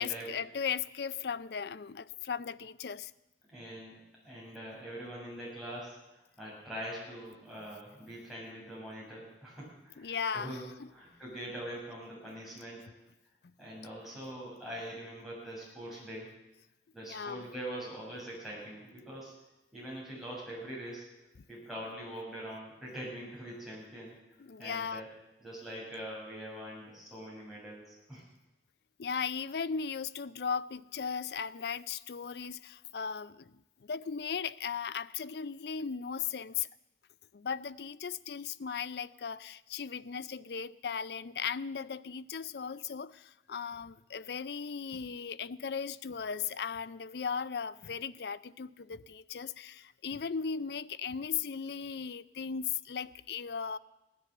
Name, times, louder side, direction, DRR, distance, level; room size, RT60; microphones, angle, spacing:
voice 1, 0.0-3.1 10.0-10.9 13.4-13.5 17.0-17.5 24.4-25.0 29.0-36.7 37.3-53.8, left 6 dB, 65° left, 16 dB, 0.5 m, -37 dB
voice 2, 3.5-4.0 4.2-12.8 13.6-16.3 16.9-19.3 19.7-21.1 21.5-24.2 24.6-25.1 25.4-28.2, right 1 dB, ahead, -6 dB, 7.0 m, -43 dB
17.0 x 10.5 x 7.8 m, 0.95 s
head